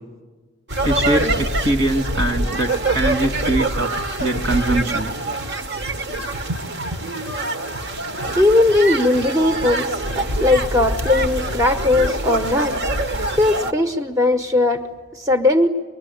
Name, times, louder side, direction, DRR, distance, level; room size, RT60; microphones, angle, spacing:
sound 1, 0.7-13.7, right 2 dB, 50° right, 1.3 m, -24 dB
voice 1, 0.8-3.9 4.2-5.1, right 1 dB, 70° right, 4 dB, 3.1 m, -22 dB
voice 2, 8.4-12.8 13.4-14.8 15.1-15.7, left 2 dB, 15° right, 6 dB, 0.9 m, -18 dB
24.5 x 21.5 x 10.0 m, 1.3 s
head